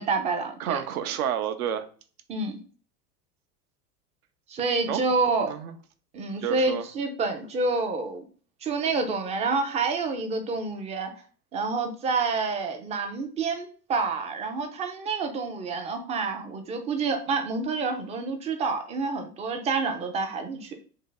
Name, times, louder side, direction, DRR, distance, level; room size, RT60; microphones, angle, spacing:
voice 1, 0.0-0.8 2.3-2.6 4.5-5.5 6.1-8.2 8.6-11.1 11.5-20.7, right 4 dB, 15° right, 0.4 m, -28 dB
voice 2, 0.6-1.9 4.9-5.0 5.5-5.7 6.4-6.8, right 9 dB, 65° right, 0.7 m, -29 dB
2.9 x 2.8 x 3.8 m
figure-of-eight pair, 80°, 46 cm